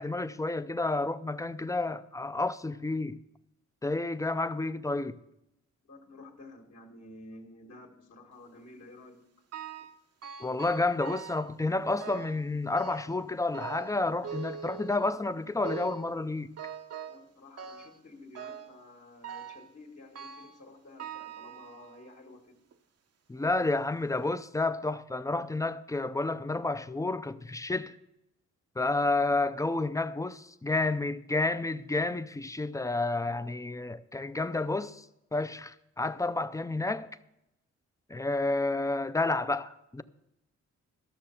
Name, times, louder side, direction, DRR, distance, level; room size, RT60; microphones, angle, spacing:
voice 1, 0.0-3.2 3.8-5.2 10.4-16.5 23.3-28.0 28.8-35.1 35.3-37.1 38.1-40.0, left 2 dB, 10° left, 0.5 m, -30 dB
voice 2, 5.8-9.2 17.0-22.6, left 2 dB, 60° left, 1.9 m, -51 dB
sound 1, 9.5-10.0 10.2-11.5 12.0-12.4 12.8-13.2 13.5-15.2 15.6-16.1 16.6-17.3 17.6-18.0 18.4-18.8 19.2-19.7 20.2-20.6 21.0-22.1 22.7-22.8 23.6-23.7 24.2-24.3, right 7 dB, 55° right, 0.8 m, -43 dB
13.0 x 6.5 x 5.8 m
cardioid pair, 75°, 30 cm